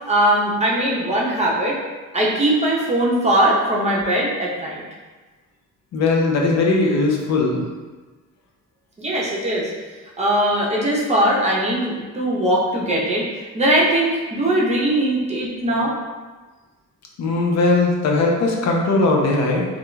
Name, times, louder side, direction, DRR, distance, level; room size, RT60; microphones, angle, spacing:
voice 1, 0.1-1.8 2.1-4.8 9.0-9.7 10.2-16.0, right 1 dB, 20° right, -4 dB, 0.6 m, -20 dB
voice 2, 5.9-7.6 17.2-19.7, left 3 dB, 60° left, -1 dB, 0.5 m, -19 dB
2.4 x 2.2 x 3.0 m, 1.3 s
cardioid pair, 90°, 30 cm